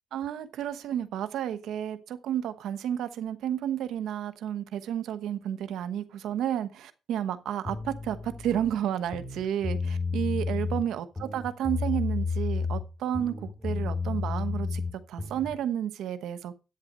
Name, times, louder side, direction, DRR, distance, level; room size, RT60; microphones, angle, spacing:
voice 1, 0.1-14.8 15.1-16.6, right 10 dB, 80° right, 1.0 m, -31 dB
sound 1, 7.6-8.7 9.1-10.8 11.2-12.9 13.1-15.5, left 4 dB, 15° left, 4.1 m, -31 dB
10.5 x 8.6 x 5.3 m
cardioid pair, 90°, 0 cm